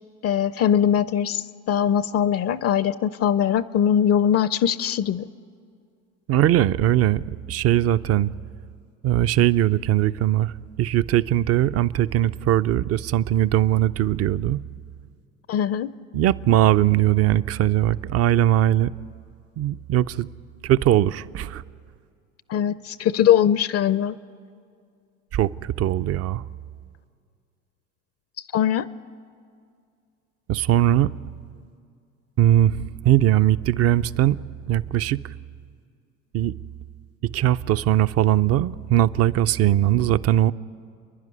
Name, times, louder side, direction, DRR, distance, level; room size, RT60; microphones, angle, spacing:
voice 1, 0.2-5.3 15.5-16.0 22.5-24.2 28.5-28.9, left 9 dB, 40° left, 17 dB, 0.5 m, -21 dB
voice 2, 6.3-7.2 7.5-8.3 9.0-10.5 10.8-14.6 16.1-18.9 19.6-20.3 20.6-21.6 25.3-26.4 30.5-31.1 32.4-34.4 34.7-35.2 36.3-36.5 37.3-40.5, right 13 dB, 40° right, 16 dB, 0.5 m, -20 dB
29.5 x 11.0 x 9.8 m, 2.3 s
hypercardioid pair, 80°, 39 cm